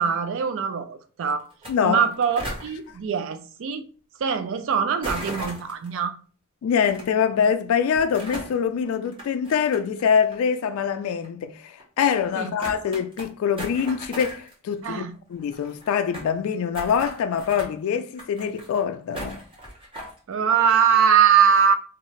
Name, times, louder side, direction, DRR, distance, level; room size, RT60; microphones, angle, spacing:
voice 1, 0.0-1.5 1.8-3.9 4.2-6.2 12.4-12.6 14.8-15.1 20.3-21.7, right 7 dB, 65° right, 0.4 m, -22 dB
sound 1, 1.5-1.7 1.9-2.6 5.0-5.9 6.8-7.0 7.9-8.6 9.0-10.0 10.3-10.4 11.2-11.3 11.8-11.9 12.2-12.3 12.6-13.3 13.6-14.5 14.8-14.9 15.1-15.2 15.4-16.3 16.7-17.7 18.1-18.8 19.1-20.2, right 1 dB, 25° right, 1.0 m, -36 dB
voice 2, 1.7-2.0 6.6-19.4, left 7 dB, 80° left, 0.3 m, -24 dB
2.7 x 2.3 x 3.1 m
head